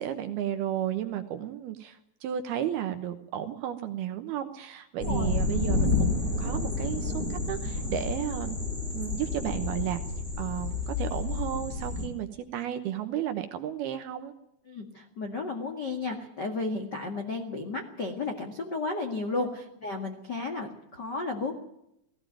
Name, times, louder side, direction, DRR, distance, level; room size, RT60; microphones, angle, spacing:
voice 1, 0.0-8.6 8.9-10.0 10.4-14.3 19.4-19.5, right 11 dB, 70° right, 8 dB, 2.5 m, -33 dB
voice 2, 5.0-5.3 14.7-21.5, left 3 dB, 80° left, 2 dB, 0.9 m, -33 dB
sound 1, 5.0-12.1, left 3 dB, 15° left, 2.8 m, -30 dB
18.0 x 16.5 x 9.1 m, 0.80 s
omnidirectional pair, 5.5 m